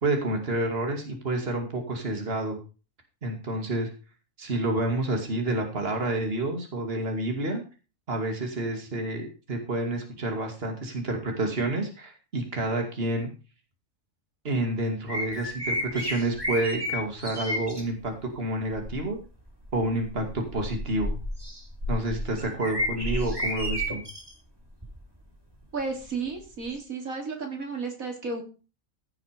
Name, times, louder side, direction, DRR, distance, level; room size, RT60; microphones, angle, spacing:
voice 1, 0.0-2.6 3.2-3.9 4.4-7.6 8.1-13.3 14.4-19.2 19.7-21.1 21.9-24.0, right 2 dB, 45° right, 3 dB, 2.6 m, -29 dB
sound 1, 15.1-17.8 18.7-19.0 19.6-24.3 24.8-25.0 26.8-26.9, left 1 dB, 15° right, 4.1 m, -31 dB
voice 2, 25.7-28.4, right 4 dB, 85° right, 2 dB, 3.5 m, -33 dB
16.0 x 6.5 x 5.1 m, 0.34 s
omnidirectional pair, 1.4 m